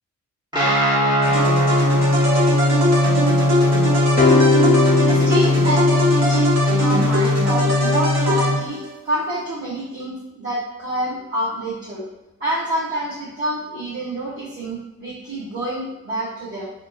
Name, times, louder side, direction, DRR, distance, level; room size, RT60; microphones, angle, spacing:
Guitar, 0.5-8.6, left 2 dB, 15° right, 1.3 m, -19 dB
sound 1, 1.2-8.9, right 1 dB, 60° right, 1.4 m, -22 dB
sound 2, 4.2-6.6, left 4 dB, 30° left, 0.5 m, -20 dB
voice 1, 5.0-12.0 12.4-16.7, right 1 dB, 40° right, -10 dB, 1.4 m, -27 dB
4.6 x 2.8 x 2.4 m, 0.96 s
cardioid pair, 85°, 30 cm